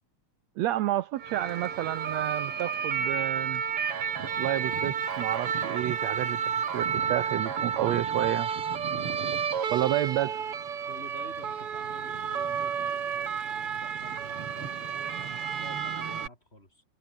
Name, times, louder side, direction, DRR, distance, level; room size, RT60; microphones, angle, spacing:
voice 1, 0.6-3.6 4.4-6.4 6.7-8.5 9.7-10.4, right 14 dB, 70° right, 1.8 m, -30 dB
sound 1, 1.2-16.3, right 7 dB, 50° right, 2.9 m, -31 dB
voice 2, 8.9-9.4 10.8-16.8, left 1 dB, 20° left, 6.7 m, -49 dB
omnidirectional pair, 3.5 m